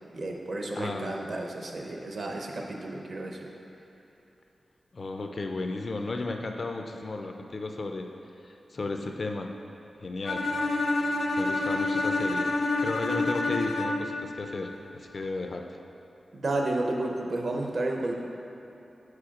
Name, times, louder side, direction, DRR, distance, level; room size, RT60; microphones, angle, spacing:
voice 1, 0.1-3.5 16.3-18.2, right 2 dB, 45° right, 1 dB, 0.6 m, -31 dB
voice 2, 0.7-1.2 4.9-8.1 8.4-9.5 10.0-10.5 11.4-12.5 12.8-15.6, left 2 dB, 40° left, 4 dB, 0.3 m, -34 dB
Bowed string instrument, 10.2-14.2, left 2 dB, 80° left, 0.6 m, -28 dB
4.8 x 4.4 x 5.7 m, 3.0 s
wide cardioid pair, 180°, 0 cm